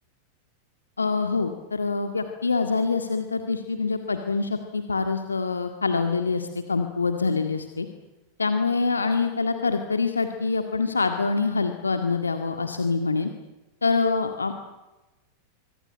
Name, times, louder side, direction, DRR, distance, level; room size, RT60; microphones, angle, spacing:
voice 1, 1.0-7.9 8.4-13.3 13.8-14.5, left 4 dB, 75° left, 7 dB, 1.8 m, -25 dB
26.0 x 24.5 x 8.9 m, 1.1 s
figure-of-eight pair, 90°, 0 cm